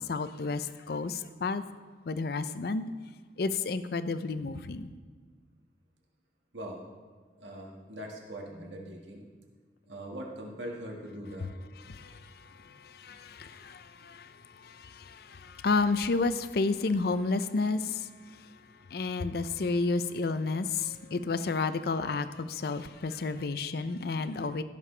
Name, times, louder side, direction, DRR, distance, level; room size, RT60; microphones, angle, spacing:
voice 1, 0.0-1.6 2.1-2.8 3.4-4.9 11.9-12.2 12.8-14.3 14.6-18.0 18.9-24.6, left 3 dB, 55° left, 12 dB, 0.5 m, -31 dB
voice 2, 6.5-6.8 7.4-9.2 9.9-11.5, right 1 dB, 85° right, -1 dB, 1.7 m, -41 dB
15.5 x 6.7 x 3.3 m, 1.5 s
head